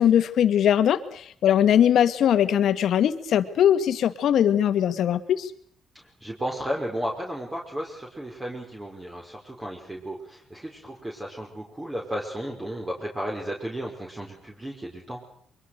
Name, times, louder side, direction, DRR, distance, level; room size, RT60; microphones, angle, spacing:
voice 1, 0.0-5.5, left 10 dB, 70° left, 11 dB, 1.9 m, -21 dB
voice 2, 6.2-15.2, equal, 15° right, -1 dB, 5.5 m, -34 dB
24.0 x 23.0 x 6.7 m, 0.63 s
cardioid pair, 90°, 0 cm